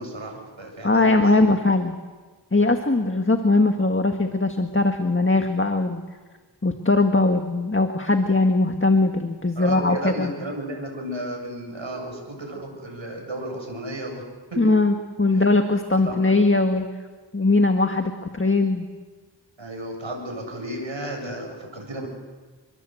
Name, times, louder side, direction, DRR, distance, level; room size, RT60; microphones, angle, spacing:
voice 1, 0.0-1.4 9.6-14.7 15.3-15.4 16.0-16.4 19.6-22.1, right 1 dB, 80° right, 2 dB, 7.7 m, -33 dB
voice 2, 0.8-2.0 2.5-6.0 6.6-10.3 14.6-16.9 17.3-18.9, left 2 dB, 25° left, 5 dB, 1.7 m, -20 dB
29.0 x 23.5 x 7.9 m, 1.4 s
wide cardioid pair, 60°, 46 cm